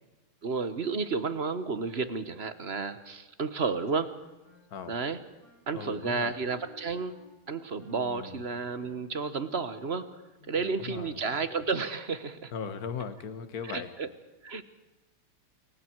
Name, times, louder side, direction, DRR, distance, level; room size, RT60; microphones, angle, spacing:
voice 1, 0.4-4.1 4.9-5.2 5.7-7.2 7.5-10.2 10.5-12.5 13.6-14.1 14.4-14.6, right 4 dB, 35° right, 11 dB, 1.2 m, -32 dB
Wind instrument woodwind instrument, 3.8-10.1, right 2 dB, 25° left, 8.1 m, -58 dB
voice 2, 5.7-6.3 7.9-8.4 10.4-11.2 12.5-13.9, left 6 dB, 45° left, 10 dB, 1.9 m, -39 dB
29.0 x 23.5 x 4.7 m, 1.1 s
omnidirectional pair, 2.3 m